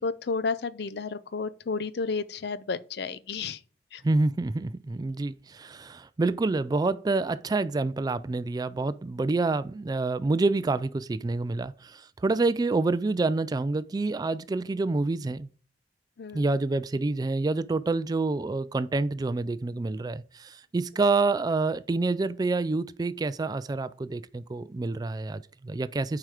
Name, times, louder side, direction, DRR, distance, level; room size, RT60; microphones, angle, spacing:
voice 1, 0.0-3.6 3.9-4.0 16.2-16.5, left 4 dB, 65° left, 0.5 m, -32 dB
voice 2, 4.0-15.5 16.3-26.2, right 3 dB, 20° right, 0.3 m, -27 dB
7.6 x 4.9 x 4.8 m
head